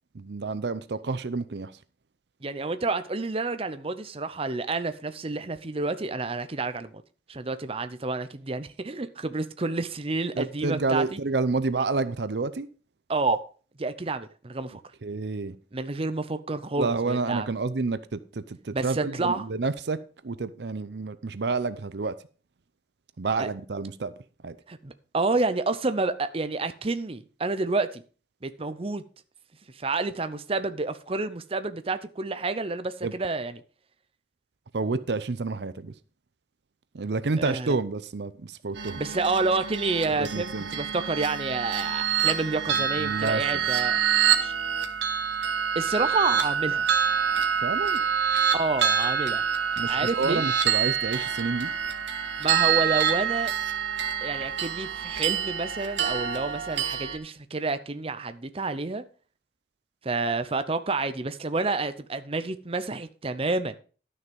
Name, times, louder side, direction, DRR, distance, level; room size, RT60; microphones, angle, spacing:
voice 1, 0.1-1.8 10.4-12.7 15.0-15.6 16.8-20.0 20.2-22.1 23.2-24.1 24.4-24.5 33.0-33.1 34.7-35.9 36.9-39.0 40.1-40.7 42.8-43.6 47.6-48.0 49.8-51.7, right 3 dB, 65° right, 0.6 m, -29 dB
voice 2, 2.4-7.0 7.3-11.2 13.1-13.4 13.8-14.8 15.7-17.5 18.7-19.5 23.4-23.5 24.7-28.0 28.4-29.0 29.7-33.6 37.4-37.7 39.0-44.0 44.4-44.5 45.8-46.9 48.5-49.4 49.9-50.4 52.4-53.5 54.2-59.0 60.0-63.7, right 3 dB, 30° right, 0.7 m, -29 dB
sound 1, 38.8-57.2, right 8 dB, 85° right, 1.6 m, -26 dB
12.0 x 6.6 x 5.3 m
head